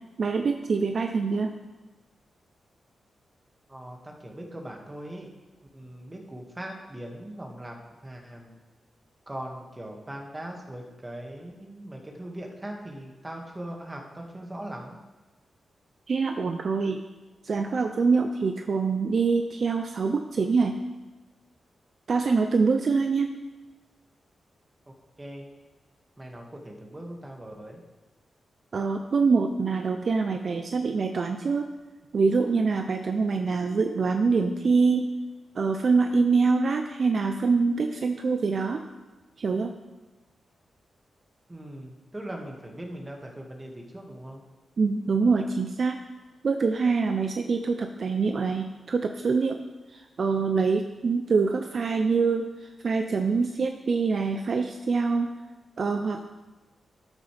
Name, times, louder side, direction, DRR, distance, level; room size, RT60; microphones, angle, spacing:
voice 1, 0.2-1.6 16.1-17.0 17.4-20.8 22.1-23.3 28.7-31.7 32.1-35.1 35.5-38.8 39.4-39.7 44.8-46.0 46.4-49.6 49.9-55.4 55.8-56.2, right 4 dB, 60° right, 6 dB, 0.6 m, -25 dB
voice 2, 3.7-5.3 5.7-7.8 8.0-8.6 9.3-15.0 25.2-25.5 26.2-27.8 41.5-44.4, right 1 dB, 20° right, 0 dB, 2.0 m, -40 dB
12.5 x 9.1 x 3.5 m, 1.2 s
cardioid pair, 65°, 0 cm